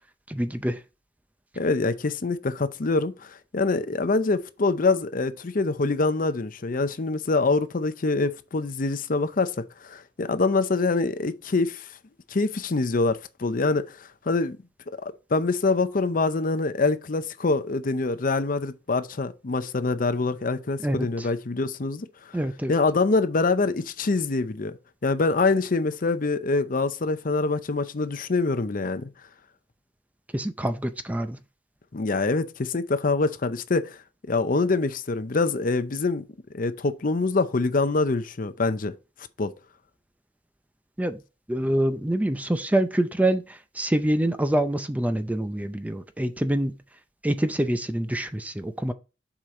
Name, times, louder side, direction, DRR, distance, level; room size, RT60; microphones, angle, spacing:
voice 1, 0.3-0.8 20.8-21.3 22.3-22.7 30.3-31.4 41.0-41.2 41.5-46.7 47.2-48.9, right 1 dB, 10° right, 0.5 m, -26 dB
voice 2, 1.6-9.5 9.8-11.9 12.3-14.6 15.0-22.1 22.7-24.8 25.0-29.1 31.9-34.0 34.3-36.2 36.5-38.9 39.4-39.5, left 3 dB, 45° left, 0.6 m, -25 dB
7.3 x 5.0 x 3.7 m
head